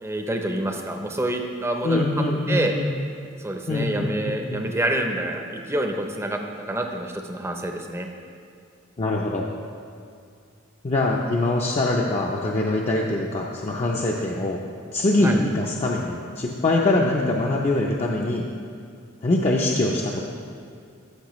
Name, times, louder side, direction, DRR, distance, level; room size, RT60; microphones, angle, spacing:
voice 1, 0.0-2.0 2.5-2.7 3.4-6.4 6.7-8.1 15.2-15.4, right 1 dB, 15° right, 3 dB, 0.6 m, -27 dB
voice 2, 1.8-2.9 3.7-4.6 9.0-9.5 10.8-14.6 14.9-18.4 19.2-20.2, left 2 dB, 30° left, -2 dB, 0.5 m, -23 dB
13.0 x 6.1 x 3.1 m, 2.4 s
head